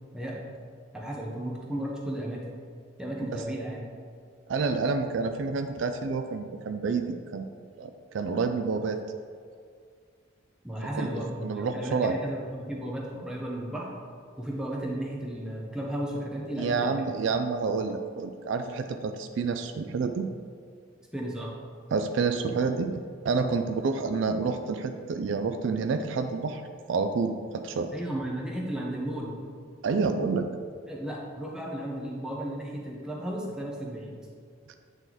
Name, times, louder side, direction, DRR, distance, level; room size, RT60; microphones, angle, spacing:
voice 1, 0.1-0.4 0.9-2.5 3.0-3.8 10.6-13.9 14.4-16.9 21.1-21.5 23.4-23.6 27.9-29.4 30.9-34.2, right 1 dB, 5° right, -3 dB, 0.8 m, -34 dB
voice 2, 4.5-7.5 7.8-9.0 10.9-11.1 11.4-12.2 16.6-20.3 21.9-23.0 23.2-26.6 26.9-27.9 29.8-30.5, right 4 dB, 65° right, 7 dB, 0.3 m, -28 dB
8.9 x 3.0 x 3.9 m, 2.1 s
head